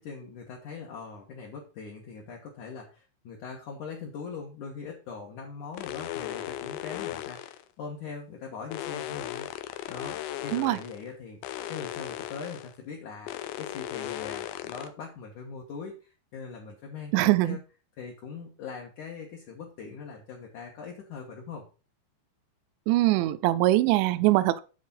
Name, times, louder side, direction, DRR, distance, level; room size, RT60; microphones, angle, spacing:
voice 1, 0.0-9.5 9.9-11.4 11.7-13.3 13.6-17.6 18.0-21.7, left 5 dB, 65° left, 2.0 m, -41 dB
sound 1, 5.7-7.6 8.7-11.0 11.4-12.7 13.3-14.9, left 13 dB, 90° left, 3.1 m, -37 dB
voice 2, 17.1-17.6 22.9-24.6, right 17 dB, 80° right, 2.7 m, -22 dB
9.6 x 4.1 x 5.5 m
omnidirectional pair, 5.3 m